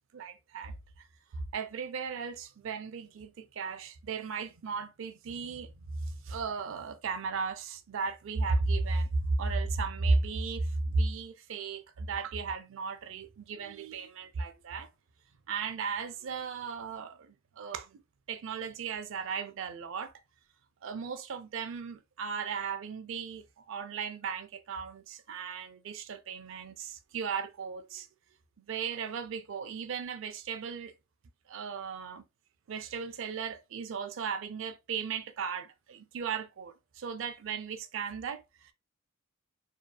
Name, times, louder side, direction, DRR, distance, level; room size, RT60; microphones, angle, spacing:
voice 1, 0.1-1.1 1.3-14.9 15.5-18.0 18.3-20.1 20.8-28.1 28.6-30.9 31.5-32.2 32.7-38.7, right 4 dB, 65° right, 0.4 m, -35 dB
2.7 x 2.2 x 2.2 m
head